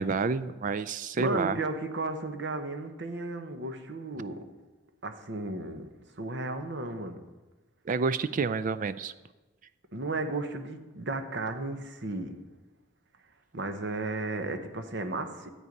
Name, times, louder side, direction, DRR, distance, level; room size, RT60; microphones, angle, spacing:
voice 1, 0.0-1.6 7.9-9.1, right 4 dB, 40° right, 14 dB, 0.4 m, -29 dB
voice 2, 1.1-4.4 5.0-5.9 6.2-7.2 9.9-12.4 13.5-15.5, right 2 dB, 60° right, 7 dB, 1.1 m, -34 dB
12.5 x 8.3 x 5.3 m, 1.2 s
head